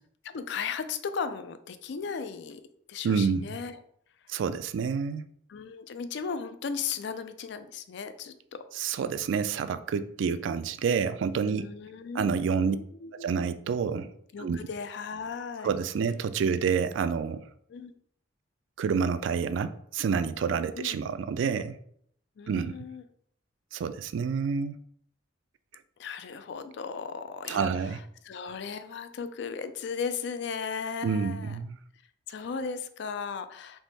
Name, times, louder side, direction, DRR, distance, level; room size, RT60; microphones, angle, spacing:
voice 1, 0.2-2.6 2.9-3.8 5.5-8.7 11.4-13.3 14.3-15.8 17.7-17.9 20.7-21.0 22.4-23.1 26.0-31.6 32.3-33.8, left 6 dB, 65° left, 11 dB, 0.4 m, -36 dB
voice 2, 3.0-3.6 4.3-5.3 8.8-11.7 12.2-12.8 13.2-14.1 14.4-14.6 15.6-17.4 18.8-21.8 22.5-22.7 23.7-24.8 27.5-28.0 31.0-31.8, right 6 dB, 85° right, 12 dB, 0.3 m, -28 dB
3.5 x 3.1 x 4.0 m, 0.68 s
head